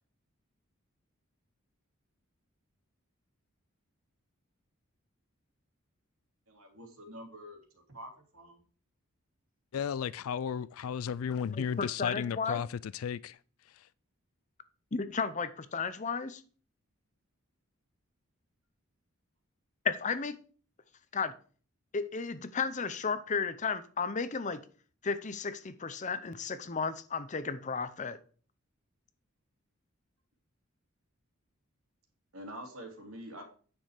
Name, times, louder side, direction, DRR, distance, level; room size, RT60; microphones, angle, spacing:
voice 1, 6.5-7.6 7.9-8.6 32.3-33.4, equal, 75° right, 2.8 m, -46 dB
voice 2, 9.7-13.4 13.7-13.9, left 7 dB, 75° left, 0.4 m, -34 dB
voice 3, 11.6-12.6 14.9-16.4 19.8-20.4 21.1-21.3 21.9-24.6 25.0-28.2, left 5 dB, 35° left, 0.6 m, -33 dB
9.3 x 6.3 x 4.9 m
head